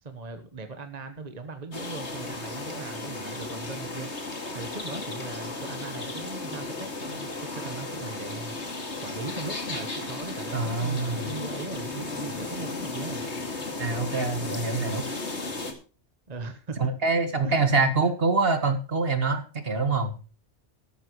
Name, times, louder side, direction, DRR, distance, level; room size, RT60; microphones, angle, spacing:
voice 1, 0.0-13.2 16.3-16.8 17.4-17.9, right 3 dB, 35° right, 8 dB, 1.3 m, -39 dB
sound 1, 1.7-15.7, left 3 dB, 70° left, 2.8 m, -35 dB
voice 2, 10.5-11.3 13.8-15.0 16.8-20.1, right 3 dB, 55° right, 8 dB, 2.0 m, -25 dB
13.0 x 13.0 x 3.1 m, 0.34 s
omnidirectional pair, 1.2 m